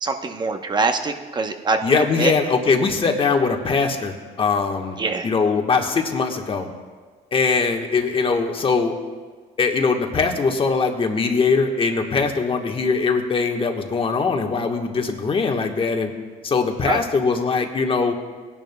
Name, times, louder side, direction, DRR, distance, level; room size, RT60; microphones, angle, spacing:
voice 1, 0.0-2.3 5.0-5.3 16.9-17.0, right 3 dB, 25° right, 6 dB, 0.8 m, -24 dB
voice 2, 1.8-5.0 5.2-6.7 7.3-8.9 9.6-16.1 16.4-18.1, left 4 dB, 30° left, 3 dB, 1.2 m, -21 dB
19.0 x 10.5 x 2.2 m, 1.5 s
cardioid pair, 110°, 17 cm